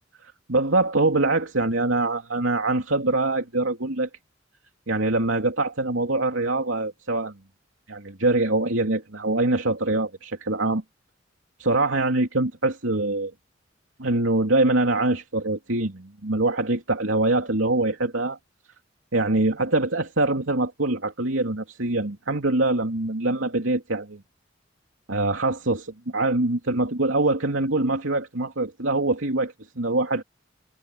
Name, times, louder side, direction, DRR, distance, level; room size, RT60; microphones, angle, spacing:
voice 1, 0.5-4.1 4.9-7.3 7.9-10.8 11.6-13.3 14.0-18.4 19.1-24.2 25.1-30.2, right 2 dB, 85° right, 2.9 m, -24 dB
head